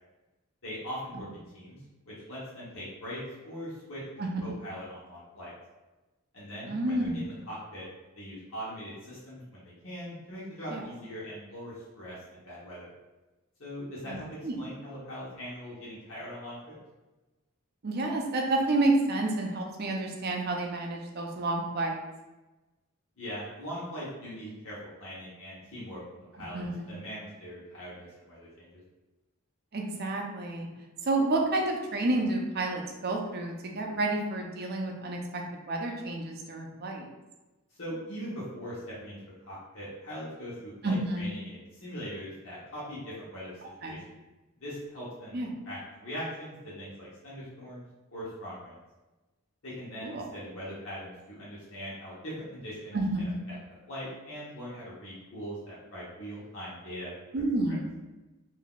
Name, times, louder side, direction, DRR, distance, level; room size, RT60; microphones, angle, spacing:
voice 1, 0.6-1.8 2.1-4.0 4.4-5.5 6.3-7.8 8.2-12.9 13.6-14.3 14.6-16.8 23.2-28.8 37.8-39.2 39.4-43.5 43.8-44.0 44.6-45.4 45.7-47.8 48.1-48.8 49.6-53.0 53.5-53.6 53.9-57.5, equal, 70° left, -8 dB, 1.0 m, -41 dB
voice 2, 6.7-7.2 10.7-10.8 14.0-14.2 14.4-14.6 17.8-22.0 26.5-26.9 29.7-30.7 31.0-37.1 40.8-41.3 43.8-44.0 45.3-45.5 50.0-50.2 52.9-53.4 57.3-57.9, right 2 dB, 50° right, 1 dB, 0.5 m, -30 dB
3.7 x 2.6 x 2.3 m, 1.1 s
head